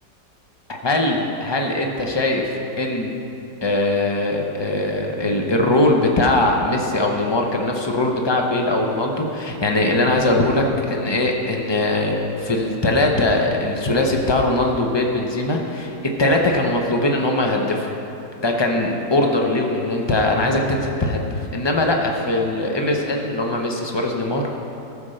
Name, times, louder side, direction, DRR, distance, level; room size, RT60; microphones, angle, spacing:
voice 1, 0.7-2.4 2.8-3.1 3.6-17.9 18.4-24.6, left 2 dB, 30° left, 1 dB, 0.5 m, -21 dB
14.0 x 5.3 x 6.5 m, 2.8 s
omnidirectional pair, 1.9 m